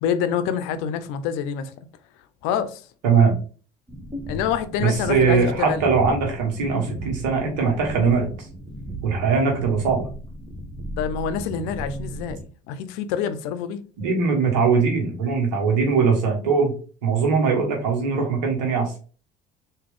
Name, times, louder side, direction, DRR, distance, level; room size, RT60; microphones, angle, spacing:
voice 1, 0.0-1.7 2.4-2.8 4.3-5.9 11.0-12.4 12.7-13.8, left 8 dB, 75° left, 0.6 m, -26 dB
voice 2, 3.0-3.3 4.8-8.3 9.0-10.1 14.0-16.8 17.0-18.9, right 5 dB, 90° right, 1.3 m, -21 dB
sound 1, 3.9-12.4, right 1 dB, 20° right, 1.1 m, -35 dB
3.6 x 2.7 x 3.6 m
hypercardioid pair, 70°, 21 cm